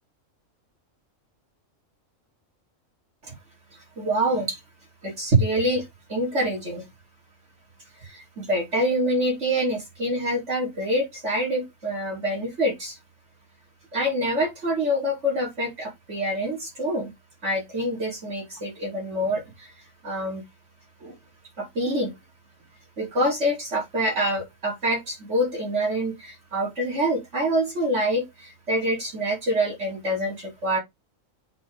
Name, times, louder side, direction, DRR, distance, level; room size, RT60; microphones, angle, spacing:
voice 1, 4.0-4.6 5.0-6.8 8.0-13.0 13.9-17.1 17.4-19.7 20.0-20.4 21.0-21.1 21.6-22.1 23.0-30.8, right 1 dB, 60° right, 2.9 m, -26 dB
8.2 x 3.3 x 3.7 m
omnidirectional pair, 1.4 m